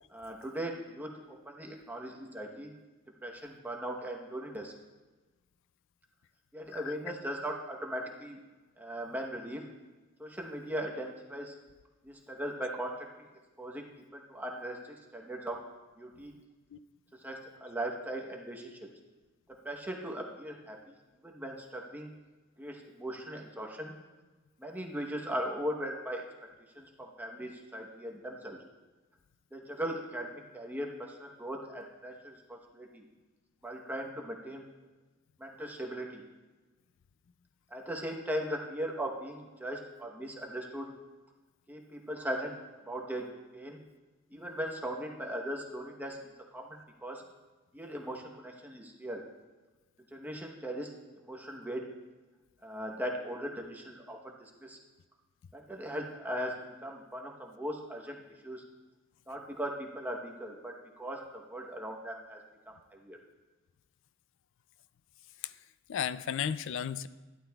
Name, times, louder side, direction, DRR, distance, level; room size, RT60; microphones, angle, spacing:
voice 1, 0.1-1.1 1.4-2.7 3.2-4.7 6.5-8.4 8.8-9.6 10.2-11.6 12.0-13.1 13.6-15.6 16.0-16.3 17.2-18.9 19.6-21.0 21.2-22.1 22.6-23.9 24.6-26.2 26.7-28.6 29.5-33.0 33.6-34.7 35.4-36.2 37.7-40.9 41.7-42.6 42.9-43.3 43.5-43.8 44.3-46.2 46.5-47.2 47.7-49.2 50.1-51.8 52.6-54.8 55.5-56.6 56.8-58.6 59.3-62.4 62.9-63.2, right 1 dB, 10° right, 0 dB, 0.9 m, -39 dB
voice 2, 65.9-67.1, left 8 dB, 65° left, 15 dB, 0.4 m, -34 dB
12.0 x 11.5 x 2.3 m, 1.3 s
head